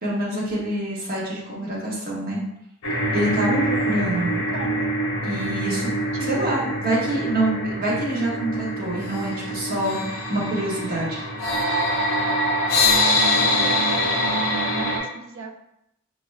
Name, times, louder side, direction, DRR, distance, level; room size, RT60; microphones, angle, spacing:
voice 1, 0.0-2.4 3.1-4.4 5.2-5.9 6.3-11.2, right 1 dB, 45° right, -5 dB, 1.3 m, -26 dB
sound 1, 2.8-15.0, left 1 dB, 65° left, 1.0 m, -24 dB
voice 2, 4.5-4.8 6.1-6.7 13.4-14.4 14.7-15.5, right 4 dB, 65° right, 4 dB, 0.4 m, -37 dB
4.8 x 3.2 x 2.3 m, 0.82 s
head